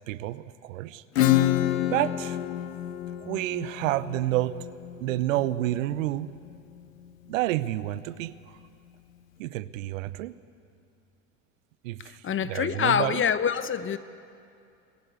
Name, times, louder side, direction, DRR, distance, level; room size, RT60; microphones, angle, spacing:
voice 1, 0.1-1.0 1.9-2.4 3.2-4.6 5.0-6.3 7.3-8.6 9.4-10.3 11.8-13.2, right 15 dB, 75° right, 17 dB, 0.9 m, -29 dB
Acoustic guitar / Strum, 1.2-6.5, left 13 dB, 85° left, 1.0 m, -28 dB
voice 2, 12.0-14.0, left 8 dB, 30° left, 13 dB, 1.1 m, -26 dB
24.0 x 21.0 x 8.3 m, 2.6 s
hypercardioid pair, 80°, 39 cm